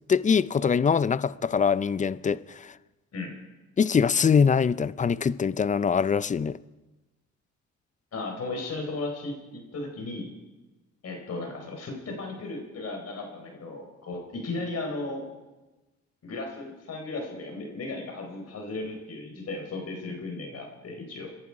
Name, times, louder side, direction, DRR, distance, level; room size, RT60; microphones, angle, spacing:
voice 1, 0.1-2.7 3.8-6.6, left 6 dB, 25° left, 0.5 m, -23 dB
voice 2, 8.1-10.3 11.0-15.3 16.2-21.3, left 2 dB, 55° left, 4.4 m, -35 dB
26.5 x 11.0 x 4.8 m
cardioid pair, 90°, 30 cm